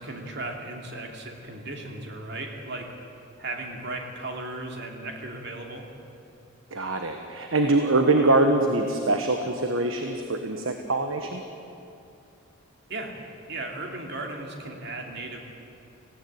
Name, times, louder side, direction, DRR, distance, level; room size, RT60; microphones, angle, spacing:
voice 1, 0.0-2.9 3.4-5.9 12.9-13.2 13.5-15.4, right 2 dB, 50° right, 2 dB, 2.7 m, -36 dB
voice 2, 6.7-11.4, right 2 dB, 70° right, 5 dB, 1.3 m, -23 dB
19.0 x 16.5 x 9.4 m, 2.7 s
head